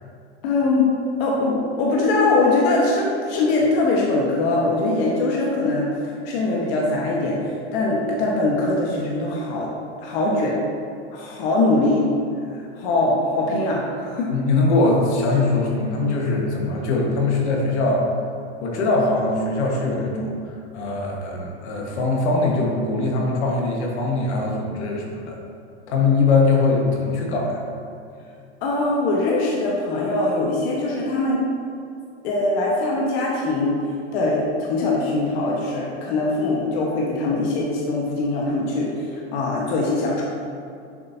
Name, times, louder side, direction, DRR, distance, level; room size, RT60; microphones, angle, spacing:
voice 1, 0.4-0.9 1.2-9.7 10.0-10.6 11.1-12.1 12.5-14.3 28.6-31.4 32.2-33.8 34.1-40.2, left 2 dB, 65° left, -3 dB, 1.3 m, -22 dB
voice 2, 14.3-18.0 18.6-25.4 25.9-27.6, left 3 dB, 80° left, -1 dB, 1.4 m, -21 dB
6.9 x 6.7 x 2.7 m, 2.5 s
hypercardioid pair, 110°, 34 cm